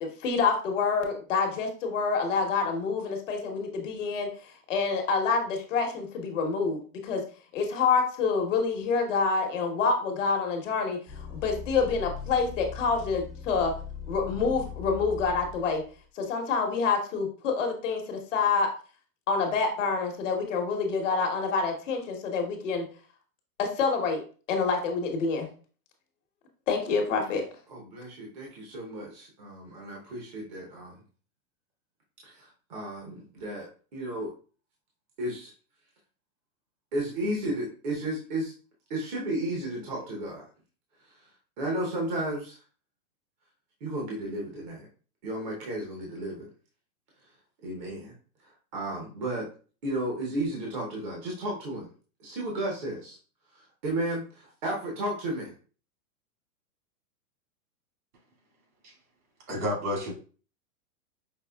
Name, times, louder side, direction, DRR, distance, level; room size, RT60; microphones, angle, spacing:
voice 1, 0.0-4.3 4.7-7.2 7.5-11.0 11.3-13.7 14.1-15.8 16.2-18.7 19.3-22.9 23.6-24.2 24.5-25.5 26.7-27.4, left 4 dB, 55° left, 3 dB, 1.1 m, -27 dB
sound 1, 11.1-16.0, left 6 dB, ahead, 0.7 m, -40 dB
voice 2, 27.7-30.9 32.2-34.3 35.2-35.5 36.9-38.5 38.9-40.4 41.6-42.6 43.8-44.8 45.2-46.4 47.6-48.1 48.7-49.4 49.8-51.9 52.2-53.2 53.5-55.5, right 1 dB, 30° right, -2 dB, 0.8 m, -33 dB
voice 3, 59.5-60.1, equal, 70° right, -1 dB, 2.2 m, -30 dB
5.4 x 3.1 x 2.2 m, 0.38 s
supercardioid pair, 175°, 46 cm